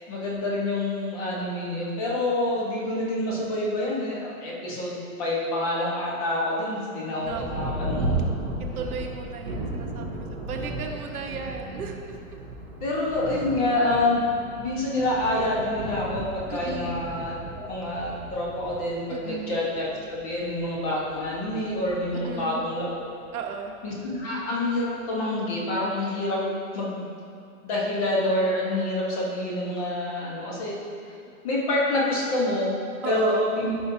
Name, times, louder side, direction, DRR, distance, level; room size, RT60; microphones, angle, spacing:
voice 1, 0.1-8.3 12.8-14.3 14.6-23.1 23.8-26.4 26.7-27.1 27.6-30.8 31.4-32.7 33.0-33.7, left 1 dB, 25° left, -4 dB, 1.2 m, -27 dB
Thunder, 7.2-23.3 24.0-24.1 24.7-25.1, right 2 dB, 10° right, 0.6 m, -35 dB
voice 2, 7.2-7.7 8.8-12.0 16.5-17.0 19.1-19.6 22.2-22.6 23.3-23.7 31.2-31.3 33.0-33.5, right 5 dB, 80° right, 2 dB, 1.2 m, -35 dB
12.5 x 5.6 x 2.8 m, 2.3 s
hypercardioid pair, 170°, 43 cm